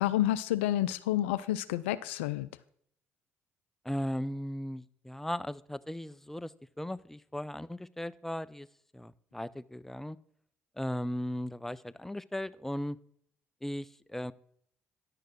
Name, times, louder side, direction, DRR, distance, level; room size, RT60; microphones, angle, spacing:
voice 1, 0.0-2.5, left 13 dB, 85° left, 14 dB, 0.3 m, -29 dB
voice 2, 3.8-8.7 8.9-10.2 10.8-13.0 13.6-14.3, equal, 5° left, 17 dB, 0.5 m, -37 dB
10.5 x 6.5 x 6.0 m, 0.67 s
hypercardioid pair, 55°, 6 cm